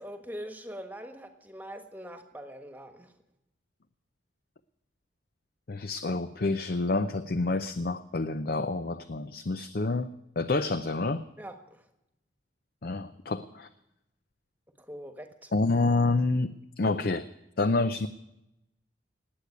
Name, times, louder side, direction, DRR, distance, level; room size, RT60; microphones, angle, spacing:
voice 1, 0.0-3.1 11.4-11.8 14.8-15.5, equal, 10° right, 6 dB, 1.4 m, -43 dB
voice 2, 5.7-11.2 12.8-13.7 15.5-17.3 17.6-18.1, left 3 dB, 50° left, 12 dB, 0.5 m, -28 dB
18.5 x 8.2 x 9.4 m, 0.89 s
head